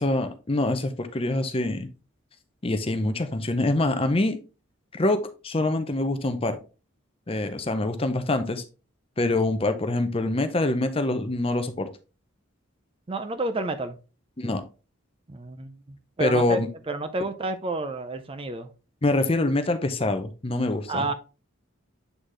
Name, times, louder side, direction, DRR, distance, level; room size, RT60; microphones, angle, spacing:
voice 1, 0.0-1.9 2.6-4.4 4.9-6.6 7.3-8.6 9.2-11.9 14.4-14.6 16.2-16.7 19.0-21.1, left 2 dB, 25° left, 9 dB, 0.6 m, -25 dB
voice 2, 13.1-14.0 15.3-15.7 16.2-18.7 20.9-21.1, right 2 dB, 25° right, 9 dB, 0.5 m, -30 dB
8.1 x 3.9 x 3.2 m, 0.33 s
head